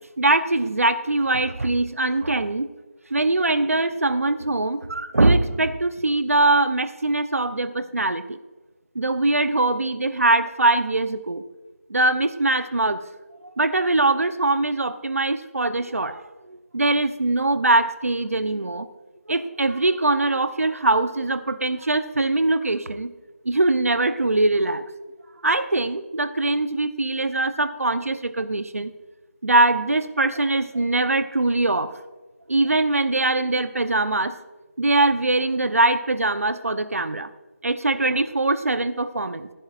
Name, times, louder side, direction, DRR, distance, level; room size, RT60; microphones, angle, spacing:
voice 1, 0.2-2.7 3.1-8.4 8.9-11.4 11.9-13.0 13.4-18.9 19.3-23.1 23.4-24.8 25.4-28.9 29.4-31.9 32.5-34.4 34.8-37.3 37.6-39.5, right 2 dB, 65° right, 11 dB, 0.8 m, -22 dB
16.0 x 10.0 x 2.5 m, 1.2 s
figure-of-eight pair, 170°, 8 cm